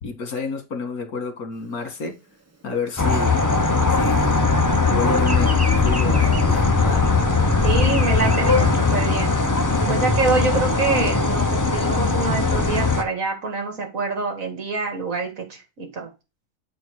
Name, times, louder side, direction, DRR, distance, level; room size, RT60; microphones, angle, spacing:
voice 1, 0.0-2.1 2.6-3.4 3.9-4.6 4.9-7.1, left 4 dB, 85° left, 2.1 m, -29 dB
Bird vocalization bird call bird song, 1.6-4.5 4.8-9.5, right 1 dB, 15° right, 0.8 m, -36 dB
sound 1, 3.0-13.0, left 3 dB, 20° left, 0.5 m, -19 dB
voice 2, 7.6-9.3 9.9-16.1, right 3 dB, 65° right, 2.3 m, -26 dB
8.1 x 4.5 x 4.7 m
omnidirectional pair, 1.5 m